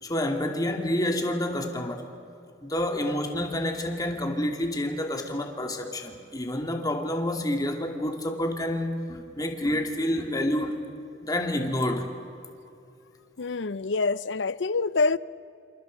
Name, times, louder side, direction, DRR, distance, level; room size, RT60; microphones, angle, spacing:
voice 1, 0.0-2.0 2.6-10.8 11.2-12.1, left 1 dB, 20° left, 2.5 m, -28 dB
voice 2, 13.4-15.2, left 3 dB, 80° left, 0.6 m, -26 dB
28.5 x 27.5 x 5.2 m
head